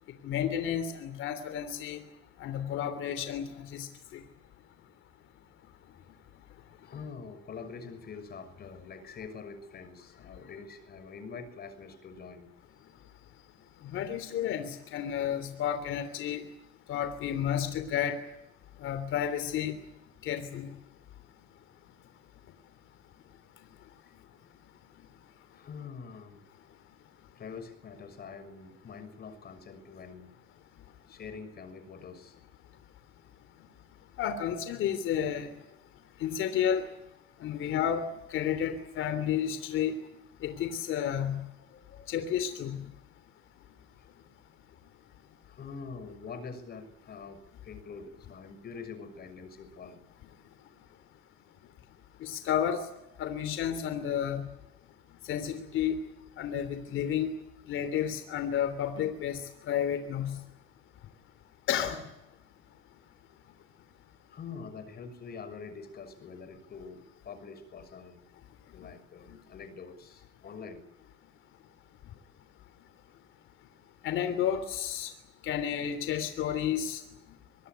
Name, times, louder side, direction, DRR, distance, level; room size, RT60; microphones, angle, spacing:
voice 1, 0.2-2.0 2.4-4.2 13.8-16.4 16.9-18.2 18.8-19.8 20.2-20.7 34.2-35.5 36.2-36.9 37.4-39.9 40.4-41.5 42.1-42.8 52.2-52.8 53.2-54.5 55.3-56.0 56.4-57.3 57.7-59.4 59.7-60.4 61.7-62.0 69.3-69.4 74.0-75.1 75.4-77.0, left 9 dB, 75° left, 10 dB, 3.2 m, -31 dB
voice 2, 6.8-12.5 25.5-26.4 27.3-30.4 31.1-32.3 34.2-34.4 35.9-36.0 37.4-37.6 41.7-42.1 44.0-44.1 45.4-50.0 64.3-68.3 68.7-70.8, left 5 dB, 50° left, 10 dB, 6.4 m, -45 dB
25.0 x 20.0 x 9.6 m, 0.82 s
cardioid pair, 115°, 21 cm